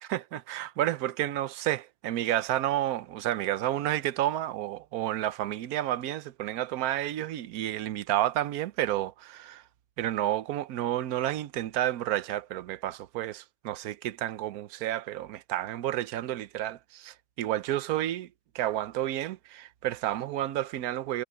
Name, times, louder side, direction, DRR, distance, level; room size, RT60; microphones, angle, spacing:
voice 1, 0.1-9.6 10.0-18.3 18.5-21.2, right 13 dB, 75° right, 1.2 m, -30 dB
omnidirectional pair, 1.6 m